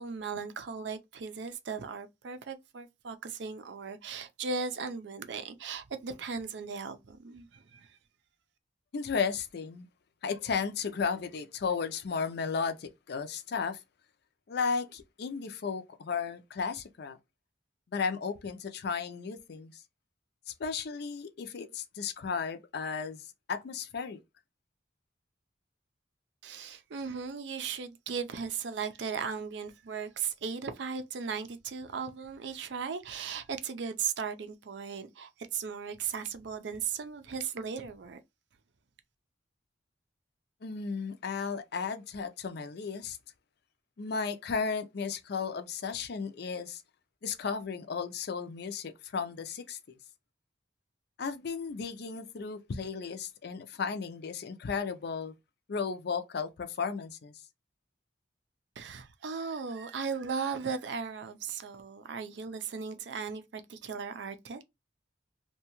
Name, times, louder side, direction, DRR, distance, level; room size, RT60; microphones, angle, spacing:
voice 1, 0.0-7.9 26.4-38.2 58.8-64.6, right 5 dB, 65° right, 0.4 m, -37 dB
voice 2, 8.9-9.9 10.2-13.8 14.5-17.2 17.9-19.8 20.5-24.2 40.6-43.2 44.0-46.8 47.2-50.0 51.2-55.3 55.7-57.4, left 5 dB, 60° left, 0.4 m, -34 dB
2.7 x 2.2 x 2.9 m
head